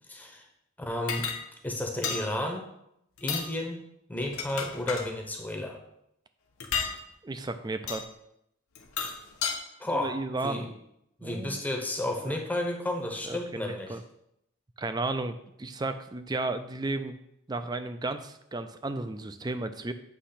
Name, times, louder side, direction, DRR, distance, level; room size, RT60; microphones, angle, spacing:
voice 1, 0.1-0.5 0.8-1.3 1.6-2.6 3.2-3.8 4.1-5.8 9.8-10.7 11.2-14.0, left 1 dB, 10° left, 2 dB, 0.8 m, -32 dB
sound 1, 1.1-1.4 2.0-2.2 3.2-3.5 4.2-5.1 6.6-6.9 7.9-8.0 8.8-9.6, left 6 dB, 80° left, 1.0 m, -32 dB
voice 2, 7.2-8.1 9.9-10.6 11.2-11.6 12.2-12.4 13.2-14.0 14.8-17.2 17.5-19.9, right 2 dB, 20° right, 9 dB, 0.4 m, -33 dB
8.4 x 3.1 x 5.7 m, 0.79 s
head